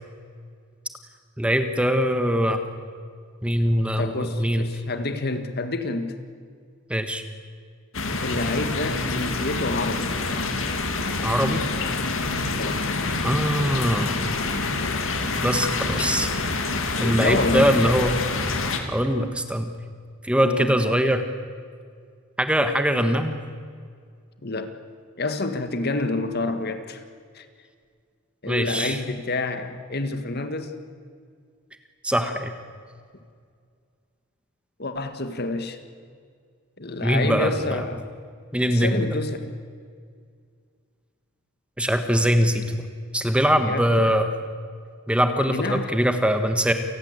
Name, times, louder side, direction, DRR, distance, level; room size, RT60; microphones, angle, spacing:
voice 1, 1.4-2.6 3.4-4.7 6.9-7.2 11.2-11.6 13.2-14.2 15.4-16.3 17.0-18.1 18.9-19.7 20.2-21.2 22.4-23.4 28.5-29.0 32.0-32.5 37.0-37.8 38.5-39.1 41.8-42.8 43.1-44.3 45.1-46.7, equal, 5° right, 7 dB, 1.5 m, -22 dB
voice 2, 4.0-6.2 8.2-10.2 12.5-12.9 17.2-17.7 20.4-20.7 24.4-24.7 25.2-27.0 27.3-27.5 28.4-30.8 34.8-35.8 36.8-38.1 38.7-39.5 43.7-44.2 45.4-45.9, left 2 dB, 50° left, 9 dB, 1.8 m, -28 dB
sound 1, 7.9-18.8, left 3 dB, 65° left, 2.6 m, -26 dB
29.0 x 19.5 x 8.2 m, 2.1 s
head